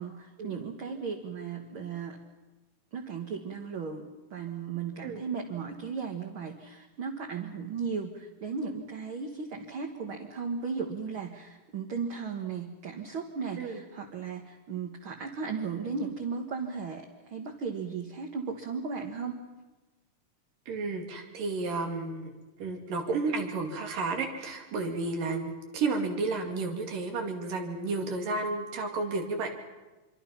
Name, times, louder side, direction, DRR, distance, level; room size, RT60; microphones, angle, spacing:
voice 1, 0.0-2.2 2.9-19.4, right 5 dB, 50° right, 2 dB, 1.9 m, -36 dB
voice 2, 20.7-22.3 22.6-29.5, right 3 dB, 85° right, 3 dB, 4.2 m, -32 dB
26.0 x 24.5 x 5.8 m, 1.2 s
omnidirectional pair, 3.8 m